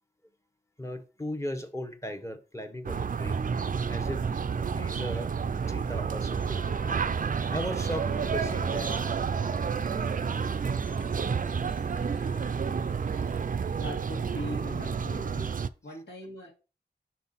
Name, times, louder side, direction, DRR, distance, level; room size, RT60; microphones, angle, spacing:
voice 1, 0.8-3.4 3.9-5.3 5.7-6.6 7.5-8.9 9.8-10.0, equal, 15° left, 0.9 m, -37 dB
sound 1, 2.8-15.7, right 6 dB, 45° right, 0.4 m, -30 dB
sound 2, 6.4-13.8, left 1 dB, 45° left, 1.2 m, -48 dB
voice 2, 13.8-15.5 15.8-16.5, left 1 dB, 85° left, 1.9 m, -40 dB
5.6 x 4.8 x 4.0 m
wide cardioid pair, 80°, 19 cm